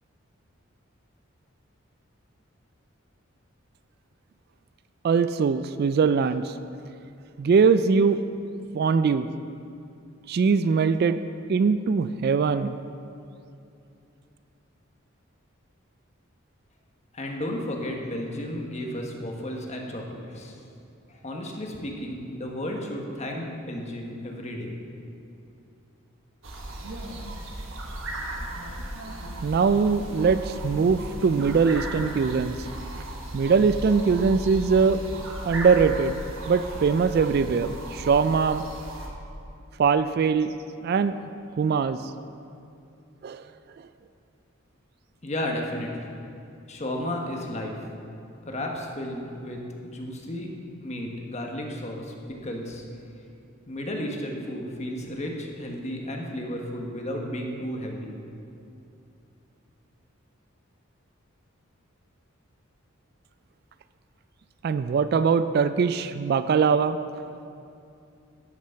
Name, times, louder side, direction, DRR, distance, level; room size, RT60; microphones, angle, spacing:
voice 1, 5.0-6.5 7.4-8.2 8.7-9.3 10.3-11.2 11.5-12.8 29.4-32.6 33.3-35.0 35.4-36.2 36.5-38.6 39.8-40.5 40.8-41.3 41.6-42.0 43.2-43.4 64.6-67.0, right 5 dB, 50° right, 12 dB, 0.3 m, -22 dB
voice 2, 17.1-20.6 21.1-24.7 45.2-45.9 46.7-47.8 48.4-50.5 50.8-52.1 52.4-52.9 53.7-58.1, left 1 dB, 35° left, 1 dB, 1.2 m, -33 dB
sound 1, 26.4-39.1, right 1 dB, 70° right, 1.4 m, -36 dB
12.5 x 6.2 x 5.7 m, 2.6 s
head